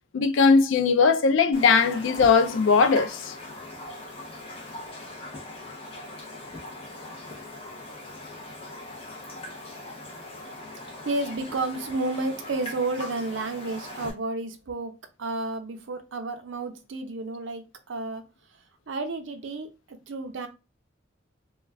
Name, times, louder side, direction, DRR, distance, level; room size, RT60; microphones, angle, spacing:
voice 1, 0.1-3.3, left 5 dB, 80° left, 0.3 m, -19 dB
Raindrop, 1.5-14.1, left 1 dB, 30° left, 0.6 m, -40 dB
voice 2, 11.0-14.9 15.2-18.2 18.9-20.5, right 2 dB, 75° right, 0.5 m, -31 dB
2.3 x 2.2 x 3.3 m
head